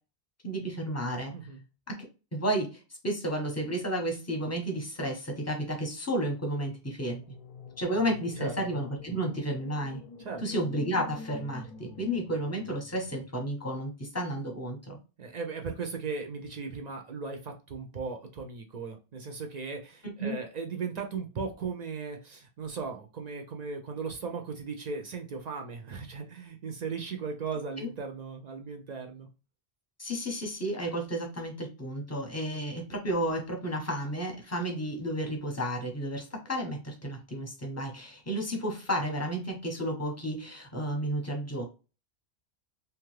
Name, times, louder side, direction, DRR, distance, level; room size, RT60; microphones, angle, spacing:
voice 1, 0.4-1.3 1.9-2.0 2.3-7.3 7.8-10.0 10.4-15.0 20.2-20.4 27.8-27.9 30.0-41.6, right 1 dB, 15° left, 2 dB, 0.7 m, -32 dB
sound 1, 7.1-13.3, left 4 dB, 60° left, 0.6 m, -47 dB
voice 2, 15.2-29.3, right 5 dB, 60° right, 4 dB, 0.4 m, -37 dB
2.8 x 2.3 x 3.1 m, 0.31 s
omnidirectional pair, 1.1 m